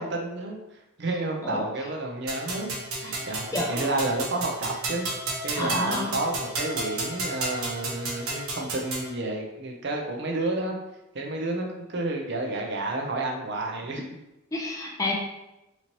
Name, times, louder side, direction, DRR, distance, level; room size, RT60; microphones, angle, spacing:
voice 1, 0.0-5.1 5.4-10.8 11.1-14.0, right 2 dB, 50° right, 1 dB, 0.6 m, -30 dB
sound 1, 2.3-9.1, right 2 dB, 80° right, 1.1 m, -32 dB
voice 2, 3.5-3.9 5.6-6.1 14.5-15.1, left 2 dB, 15° left, -1 dB, 0.5 m, -29 dB
4.0 x 3.0 x 2.9 m, 0.94 s
head